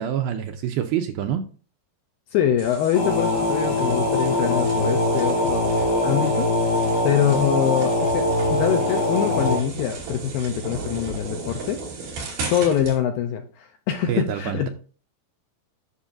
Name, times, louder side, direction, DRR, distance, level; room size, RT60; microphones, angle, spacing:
voice 1, 0.0-1.4 14.1-14.7, right 10 dB, 80° right, 6 dB, 2.2 m, -26 dB
voice 2, 2.3-5.7 6.0-6.7 7.0-11.8 12.5-14.7, left 9 dB, 80° left, 6 dB, 2.1 m, -24 dB
sound 1, 2.6-13.0, right 4 dB, 60° right, 4.3 m, -36 dB
sound 2, 2.9-9.6, left 1 dB, 65° left, 4.7 m, -22 dB
11.0 x 6.4 x 2.5 m, 0.39 s
omnidirectional pair, 4.8 m